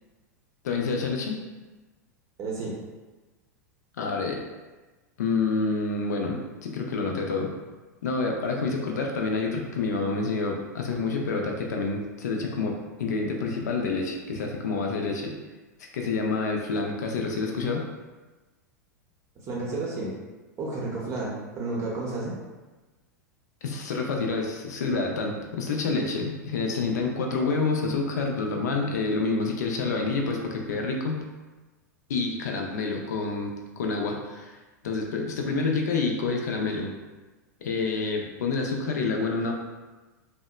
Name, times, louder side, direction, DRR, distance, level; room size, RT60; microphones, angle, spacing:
voice 1, 0.6-1.4 4.0-4.4 5.2-7.5 8.0-15.3 15.9-17.9 23.6-31.2 32.1-34.6 34.8-36.9 37.6-39.5, left 4 dB, 70° left, 1 dB, 0.4 m, -28 dB
voice 2, 2.4-2.7 19.5-20.1 20.6-22.4, right 3 dB, 30° right, -5 dB, 0.6 m, -31 dB
2.7 x 2.1 x 2.2 m, 1.2 s
figure-of-eight pair, 90°, 10 cm